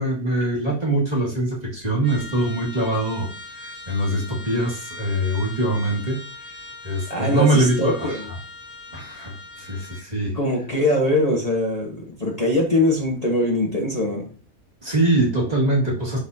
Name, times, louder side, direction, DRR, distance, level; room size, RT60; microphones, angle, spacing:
voice 1, 0.0-3.3 3.9-6.2 6.8-8.1 8.9-10.4 14.8-16.2, right 1 dB, 30° right, -4 dB, 2.0 m, -23 dB
Trumpet, 2.0-10.1, left 2 dB, 65° left, 2.3 m, -40 dB
voice 2, 7.1-8.3 10.3-14.3, left 1 dB, 25° left, -2 dB, 1.3 m, -22 dB
11.0 x 4.1 x 2.7 m, 0.42 s
omnidirectional pair, 1.5 m